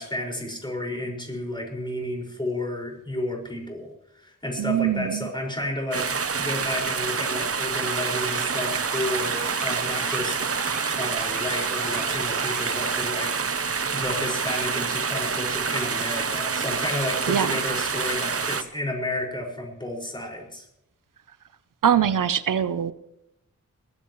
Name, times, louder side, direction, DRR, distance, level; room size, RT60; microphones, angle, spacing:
voice 1, 0.0-6.1 6.4-10.4 10.9-20.7, left 1 dB, 15° left, 0 dB, 5.4 m, -32 dB
voice 2, 4.6-5.3 17.3-17.5 21.8-22.9, right 9 dB, 90° right, 14 dB, 0.7 m, -22 dB
sound 1, 5.9-18.6, right 5 dB, 45° right, 0.9 m, -27 dB
sound 2, 7.8-12.9, right 4 dB, 70° right, 1.6 m, -36 dB
20.5 x 15.5 x 3.2 m, 0.82 s
wide cardioid pair, 70°, 31 cm